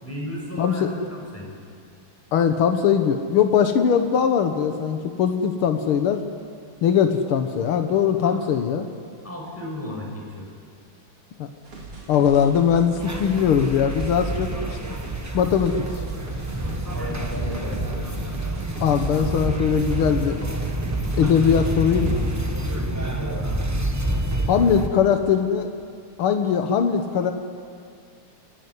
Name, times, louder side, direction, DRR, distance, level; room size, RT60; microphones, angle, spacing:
voice 1, 0.0-1.5 8.1-8.4 9.2-10.5 14.3-14.4 16.9-18.0 23.2-23.6, left 1 dB, 5° left, -1 dB, 6.0 m, -34 dB
voice 2, 0.6-0.9 2.3-6.2 6.8-8.9 11.4-11.5 12.1-14.5 15.3-15.8 18.8-20.4 21.2-22.2 24.5-25.7 26.2-27.3, left 7 dB, 80° left, 6 dB, 2.1 m, -20 dB
sound 1, 11.7-22.6, right 3 dB, 85° right, 4.5 m, -38 dB
sound 2, 13.0-24.9, right 1 dB, 10° right, 0.9 m, -28 dB
28.5 x 17.0 x 9.7 m, 2.2 s
omnidirectional pair, 2.3 m